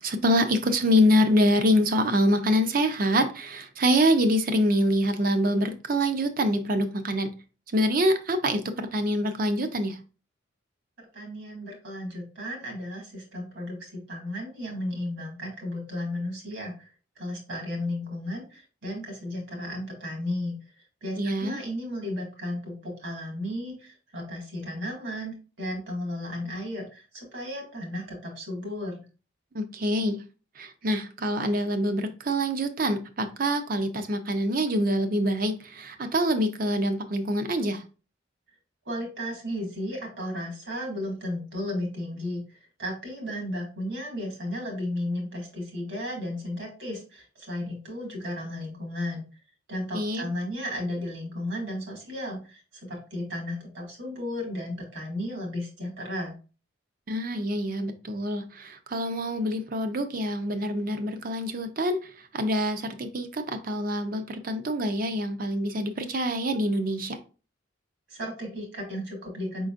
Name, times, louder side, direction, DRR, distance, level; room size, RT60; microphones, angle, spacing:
voice 1, 0.0-7.3 7.7-10.0 21.2-21.6 29.5-30.2 30.6-37.8 49.9-50.3 57.1-67.2, equal, 45° right, 0.6 m, -25 dB
voice 2, 11.1-16.9 17.2-20.5 21.0-29.0 38.9-42.4 42.8-49.3 49.7-56.3 68.1-69.7, left 1 dB, 70° right, 2.0 m, -34 dB
5.2 x 3.9 x 2.5 m
head